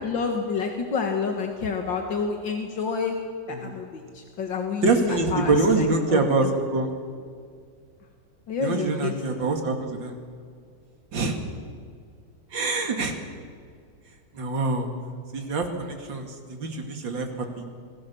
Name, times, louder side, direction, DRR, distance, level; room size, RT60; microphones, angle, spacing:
voice 1, 0.0-3.2 3.5-6.2 8.5-9.1, left 5 dB, 85° left, 3 dB, 2.4 m, -29 dB
voice 2, 4.8-6.9 8.6-10.1 11.1-11.4 12.5-13.2 14.3-14.9 15.3-17.6, right 3 dB, 85° right, 4 dB, 3.1 m, -25 dB
26.5 x 20.5 x 7.1 m, 2.1 s
omnidirectional pair, 2.0 m